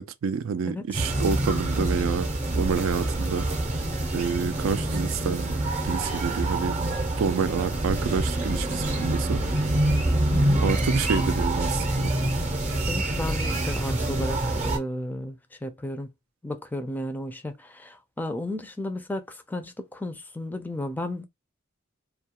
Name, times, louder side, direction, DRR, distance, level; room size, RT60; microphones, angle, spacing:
voice 1, 0.0-3.4 4.1-6.7 7.2-9.4 10.6-12.1, right 6 dB, 80° right, 0.4 m, -28 dB
voice 2, 0.6-1.0 10.3-10.6 12.9-16.1 16.4-21.2, left 1 dB, 10° left, 0.3 m, -33 dB
sound 1, 0.9-14.8, right 1 dB, 35° right, 0.6 m, -26 dB
2.3 x 2.2 x 2.8 m
head